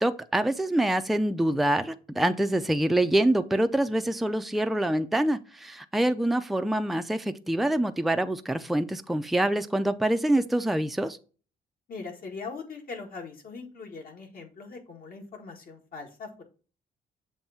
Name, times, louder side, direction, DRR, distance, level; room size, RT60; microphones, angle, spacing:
voice 1, 0.0-11.2, right 1 dB, ahead, 0.4 m, -25 dB
voice 2, 11.9-16.4, left 4 dB, 60° left, 1.7 m, -41 dB
7.2 x 2.6 x 5.5 m
cardioid pair, 90°, 17 cm